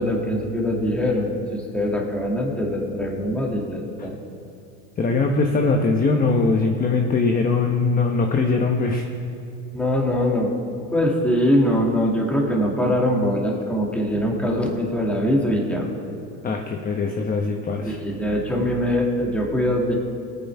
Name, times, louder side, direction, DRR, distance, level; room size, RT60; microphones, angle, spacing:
voice 1, 0.0-4.2 9.7-10.5 10.9-15.9 17.9-19.9, equal, 5° left, -2 dB, 2.3 m, -22 dB
voice 2, 5.0-9.0 16.4-18.0, left 3 dB, 25° left, 3 dB, 1.0 m, -21 dB
19.0 x 9.5 x 3.5 m, 2.7 s
supercardioid pair, 110°, 35 cm